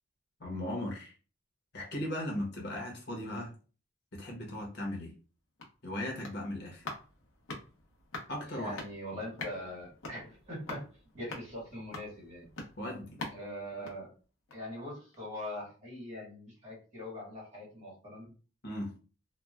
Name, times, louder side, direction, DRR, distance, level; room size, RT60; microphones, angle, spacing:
voice 1, 0.4-1.1 1.7-3.5 4.1-5.1 5.8-6.9 8.3-8.8 12.8-13.2 18.6-18.9, left 1 dB, 50° left, -1 dB, 0.9 m, -37 dB
sound 1, 5.2-14.8 15.1-15.2, left 3 dB, 90° left, 0.8 m, -46 dB
voice 2, 8.5-10.9 11.1-12.5 13.3-14.1 14.5-18.3, left 1 dB, 35° right, -5 dB, 1.5 m, -42 dB
3.0 x 2.2 x 2.3 m, 0.37 s
head